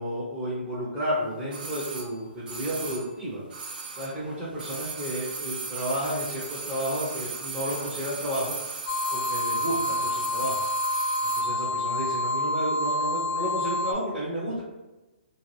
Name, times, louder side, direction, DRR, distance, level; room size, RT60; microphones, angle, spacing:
voice 1, 0.0-3.4 3.9-8.6 9.1-10.6 11.2-14.6, equal, ahead, -10 dB, 0.4 m, -32 dB
sound 1, 1.5-4.3 4.5-11.5 11.8-11.9, right 4 dB, 55° right, 0.5 m, -36 dB
sound 2, 8.9-13.9, left 1 dB, 70° left, 0.4 m, -28 dB
2.6 x 2.1 x 3.0 m, 1.1 s
hypercardioid pair, 175°, 6 cm